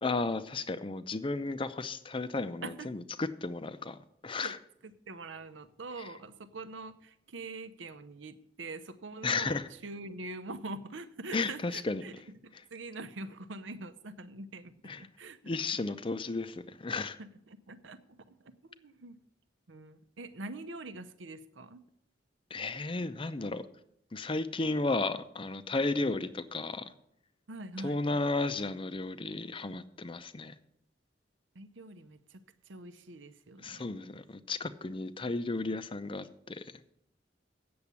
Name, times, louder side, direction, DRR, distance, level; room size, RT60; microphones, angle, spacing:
voice 1, 0.0-4.0 4.2-4.6 9.2-9.7 11.3-12.0 14.9-15.0 15.4-17.2 22.5-23.6 24.1-26.9 27.8-30.5 33.6-36.7, left 3 dB, 30° left, 12 dB, 0.6 m, -33 dB
voice 2, 4.8-12.1 12.4-15.6 17.2-19.2 19.7-21.8 27.5-28.0 31.5-33.9, right 2 dB, 90° right, 11 dB, 0.8 m, -44 dB
8.6 x 7.1 x 8.2 m, 0.73 s
head